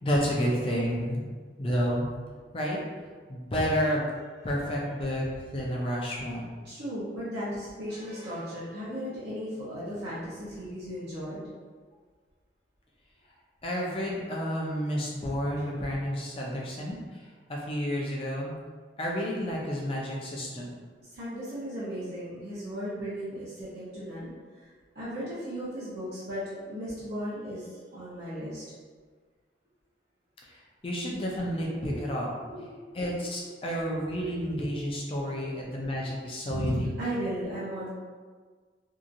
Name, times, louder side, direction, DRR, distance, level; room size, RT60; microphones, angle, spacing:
voice 1, 0.0-1.3 1.6-2.1 2.5-2.8 3.3-4.0 4.4-5.2 5.5-6.5 13.6-17.2 17.5-18.6 19.0-20.7 30.8-32.3 32.9-36.9, equal, 30° left, -3 dB, 0.5 m, -30 dB
voice 2, 6.6-11.4 15.6-15.7 21.0-24.7 24.9-28.6 31.0-31.1 31.3-32.1 32.5-32.7 33.0-33.1 34.3-34.7 36.5-37.9, equal, 65° right, -11 dB, 0.7 m, -36 dB
2.8 x 2.4 x 2.5 m, 1.5 s
head